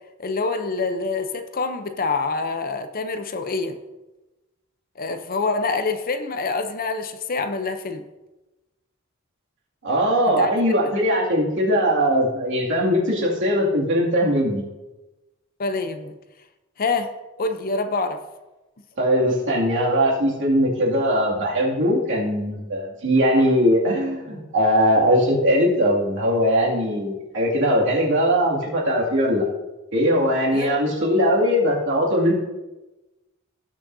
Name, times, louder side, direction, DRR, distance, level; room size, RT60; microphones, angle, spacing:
voice 1, 0.2-3.8 5.0-8.0 10.4-10.5 15.6-16.1 16.8-17.1 17.4-18.2 30.5-30.8, left 3 dB, 45° left, 8 dB, 0.6 m, -26 dB
voice 2, 9.8-14.7 19.0-29.5 29.9-32.3, equal, 60° right, -3 dB, 2.4 m, -20 dB
18.0 x 6.3 x 2.7 m, 1.1 s
head